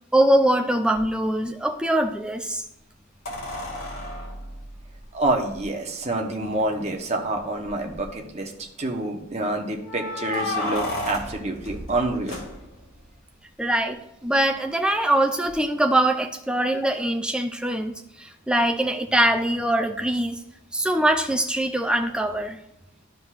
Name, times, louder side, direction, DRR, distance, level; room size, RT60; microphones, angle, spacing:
voice 1, 0.1-2.6 13.6-20.4 20.7-22.6, right 1 dB, 5° right, 5 dB, 0.4 m, -23 dB
sound 1, 0.9-1.0 3.2-5.6 6.6-6.7 7.0-7.1 7.6-8.1 9.8-13.0 15.5-15.6, left 1 dB, 65° left, 2.1 m, -33 dB
voice 2, 5.1-8.5 8.8-12.4, right 2 dB, 30° right, 2 dB, 1.0 m, -27 dB
12.5 x 5.2 x 2.5 m, 0.89 s
head